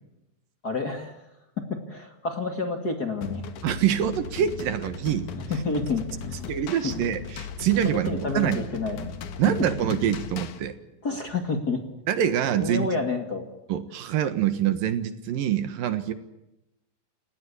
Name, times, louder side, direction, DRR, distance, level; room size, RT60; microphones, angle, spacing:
voice 1, 0.6-1.2 1.6-3.4 5.4-6.5 7.8-9.1 9.5-9.6 11.0-11.8 12.6-13.5, left 3 dB, 30° left, 5 dB, 2.3 m, -29 dB
sound 1, 3.2-10.6, left 5 dB, 60° left, 2.7 m, -37 dB
voice 2, 3.6-5.3 6.5-8.6 9.4-10.7 12.1-12.9 13.7-16.1, right 10 dB, 75° right, 11 dB, 3.0 m, -25 dB
30.0 x 17.5 x 8.5 m, 0.92 s
omnidirectional pair, 4.2 m